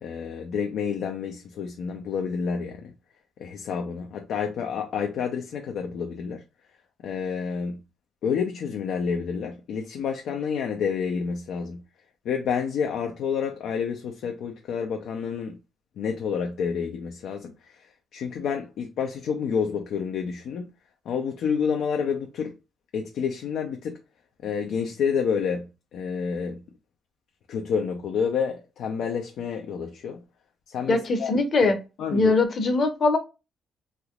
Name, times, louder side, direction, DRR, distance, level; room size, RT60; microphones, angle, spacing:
voice 1, 0.0-2.9 3.4-6.4 7.0-7.8 8.2-11.8 12.2-15.6 16.0-20.7 21.1-22.5 22.9-24.0 24.4-25.7 25.9-26.6 27.5-30.2 30.7-31.3 31.6-31.7 32.0-32.4, left 6 dB, 75° left, 0.5 m, -29 dB
voice 2, 30.9-31.8 32.1-33.2, left 3 dB, 50° left, 0.8 m, -21 dB
3.4 x 2.8 x 2.3 m
cardioid pair, 90°, 0 cm